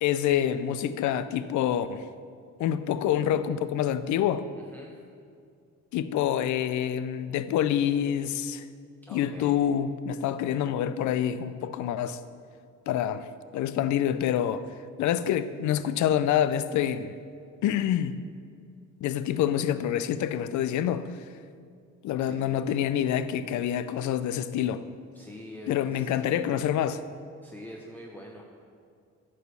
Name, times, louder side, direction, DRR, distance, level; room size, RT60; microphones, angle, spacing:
voice 1, 0.0-2.0 2.6-4.4 5.9-8.6 9.1-12.2 12.9-13.3 13.5-14.6 15.0-17.2 17.6-18.2 19.0-21.1 22.0-24.9 25.7-27.0, left 10 dB, 75° left, 13 dB, 0.5 m, -27 dB
voice 2, 4.6-5.0 9.1-9.6 10.3-10.7 22.2-22.7 25.1-26.2 27.4-28.4, equal, 5° left, -2 dB, 0.7 m, -45 dB
9.2 x 3.2 x 6.7 m, 2.2 s
cardioid pair, 90°, 30 cm